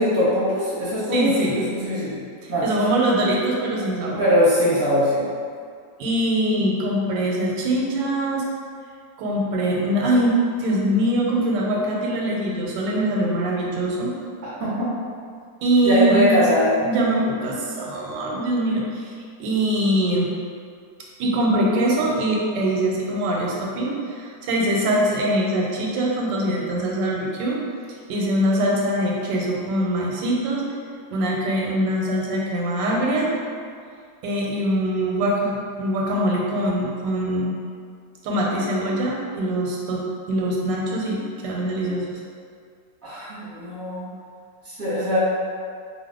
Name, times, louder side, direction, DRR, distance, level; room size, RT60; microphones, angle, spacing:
voice 1, 0.0-2.2 2.5-2.6 4.2-5.2 14.6-14.9 15.8-16.7 43.0-44.0 44.6-45.2, equal, 10° right, -12 dB, 0.9 m, -21 dB
voice 2, 1.1-1.7 2.4-4.2 6.0-8.4 9.2-14.1 15.6-16.2 16.8-19.1 19.4-20.3 21.2-27.6 28.1-30.6 31.1-33.3 34.2-37.6 38.2-42.2, right 1 dB, 90° right, -2 dB, 1.2 m, -23 dB
2.6 x 2.4 x 3.5 m, 2.2 s
omnidirectional pair, 1.9 m